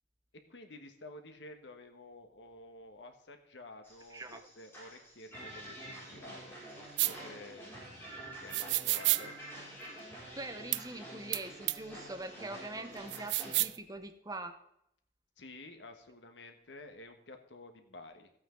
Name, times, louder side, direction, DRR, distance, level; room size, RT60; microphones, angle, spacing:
voice 1, 0.5-8.1 8.4-9.4 15.4-18.3, left 2 dB, 85° left, 6 dB, 1.4 m, -51 dB
sound 1, 3.8-13.6, right 1 dB, 15° left, 5.4 m, -48 dB
voice 2, 4.1-4.4 10.3-14.6, right 2 dB, 20° right, 8 dB, 0.8 m, -43 dB
sound 2, 7.0-7.1 8.5-9.2 10.7-10.8 11.3-11.4 11.7-11.8 13.1-13.8, right 19 dB, 75° right, 0.3 m, -29 dB
14.5 x 8.7 x 3.8 m, 0.76 s
head